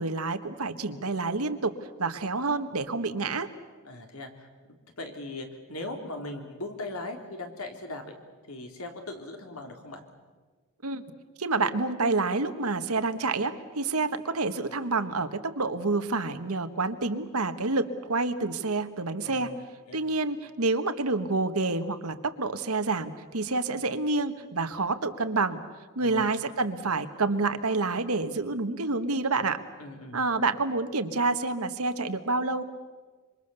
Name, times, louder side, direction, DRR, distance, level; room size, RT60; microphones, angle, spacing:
voice 1, 0.0-1.7 2.0-3.5 10.8-11.0 11.4-19.5 19.9-25.6 25.9-29.6 30.1-32.6, right 3 dB, 85° right, 9 dB, 1.5 m, -28 dB
voice 2, 3.8-4.5 5.0-8.0 8.5-10.0 19.2-19.6 19.9-20.0 26.0-26.3 29.8-30.2, left 2 dB, 80° left, 4 dB, 3.5 m, -39 dB
26.5 x 25.0 x 7.0 m, 1.4 s
head